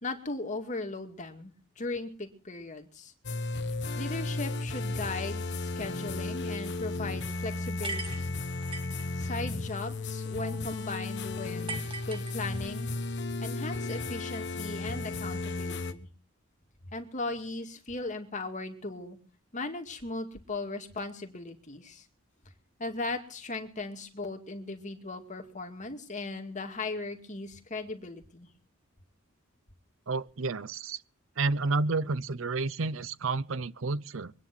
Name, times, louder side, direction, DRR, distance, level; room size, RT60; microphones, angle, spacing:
voice 1, 0.0-3.1 4.0-8.3 9.2-11.7 12.0-12.9 13.4-16.1 16.9-19.2 19.5-22.0 22.8-28.5, left 2 dB, 35° left, 2.3 m, -37 dB
sound 1, 3.2-15.9, left 2 dB, 60° left, 1.2 m, -34 dB
sound 2, 7.8-9.1 11.7-12.8, right 3 dB, 25° right, 2.0 m, -39 dB
voice 2, 30.1-31.0 31.4-34.3, right 3 dB, 70° right, 0.7 m, -30 dB
23.5 x 9.8 x 6.1 m
head